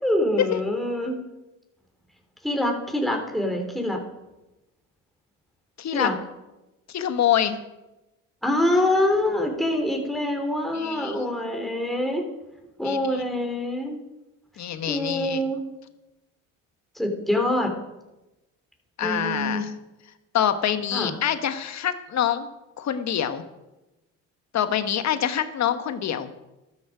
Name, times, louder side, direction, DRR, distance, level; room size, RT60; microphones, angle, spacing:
voice 1, 0.0-1.2 2.4-4.0 5.9-6.1 8.4-12.2 12.8-14.0 14.9-15.6 17.0-17.7 19.0-19.6 20.9-21.1, left 1 dB, ahead, 2 dB, 3.6 m, -25 dB
voice 2, 5.8-6.1 6.9-7.6 10.7-11.2 12.8-13.0 14.6-15.4 19.0-19.7 20.3-22.5 22.8-23.4 24.5-26.3, left 9 dB, 50° left, 10 dB, 1.5 m, -25 dB
13.0 x 13.0 x 5.0 m, 0.99 s
supercardioid pair, 80°, 35 cm